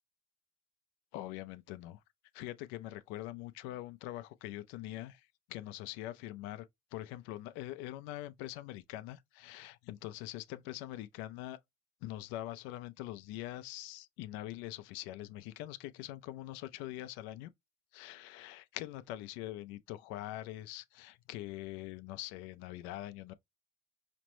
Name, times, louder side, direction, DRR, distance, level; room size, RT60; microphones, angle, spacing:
voice 1, 1.1-2.0 2.3-6.7 6.9-11.6 12.0-17.5 17.9-23.3, left 15 dB, 85° left, 0.4 m, -43 dB
5.1 x 2.1 x 3.0 m
supercardioid pair, 65°, 19 cm